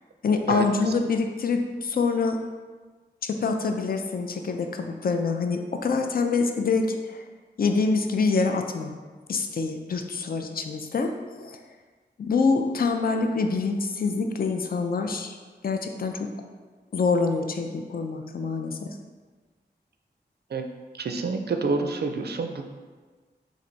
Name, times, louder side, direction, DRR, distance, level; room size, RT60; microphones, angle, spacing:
voice 1, 0.2-2.4 3.2-7.2 7.6-8.9 9.3-11.6 12.2-15.4 15.6-16.3 16.9-18.9, left 4 dB, 55° left, 5 dB, 0.4 m, -26 dB
voice 2, 21.0-22.7, right 4 dB, 65° right, 5 dB, 0.4 m, -28 dB
3.1 x 2.6 x 3.8 m, 1.4 s
cardioid pair, 40°, 18 cm